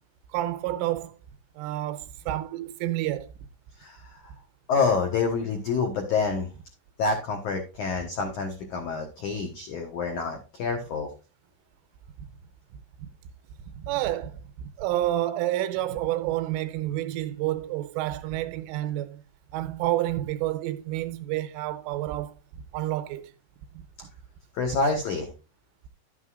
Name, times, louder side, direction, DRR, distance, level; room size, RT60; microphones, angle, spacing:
voice 1, 0.3-1.2 1.6-3.3 13.0-13.1 13.7-19.2 19.5-22.4 22.7-23.3 23.7-23.8, right 14 dB, 90° right, 3.4 m, -29 dB
voice 2, 3.8-4.3 4.7-6.5 7.0-11.1 24.5-25.3, left 4 dB, 85° left, 1.7 m, -27 dB
11.5 x 9.1 x 2.5 m
omnidirectional pair, 5.7 m